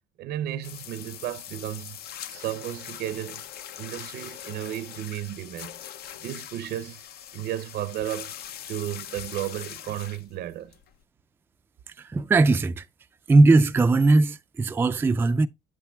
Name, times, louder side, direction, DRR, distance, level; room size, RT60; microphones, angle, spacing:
voice 1, 0.2-2.0 2.3-3.4 3.8-5.8 6.2-7.0 7.3-8.4 8.7-10.7, right 12 dB, 70° right, 0.7 m, -33 dB
sound 1, 0.6-11.0, left 10 dB, 70° left, 0.7 m, -42 dB
voice 2, 12.0-12.8 13.3-15.5, right 3 dB, 15° right, 0.3 m, -19 dB
8.5 x 6.4 x 2.3 m
cardioid pair, 110°, 17 cm